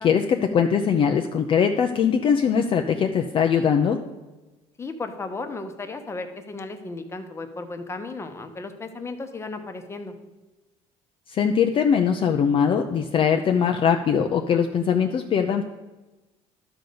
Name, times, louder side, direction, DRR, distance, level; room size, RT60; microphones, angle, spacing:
voice 1, 0.0-4.0 11.3-15.6, left 7 dB, 45° left, 4 dB, 0.6 m, -21 dB
voice 2, 4.8-10.1, left 3 dB, 20° left, 7 dB, 1.0 m, -35 dB
11.5 x 4.0 x 6.7 m, 1.1 s
cardioid pair, 115°, 13 cm